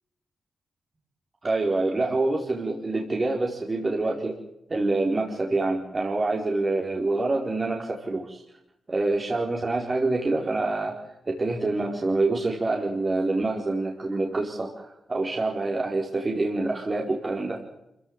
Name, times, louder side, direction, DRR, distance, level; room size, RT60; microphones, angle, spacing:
voice 1, 1.4-4.4 4.7-8.4 8.9-11.0 11.3-17.6, right 2 dB, 40° right, 0 dB, 4.7 m, -26 dB
26.5 x 17.0 x 9.1 m, 0.84 s
cardioid pair, 50°, 0 cm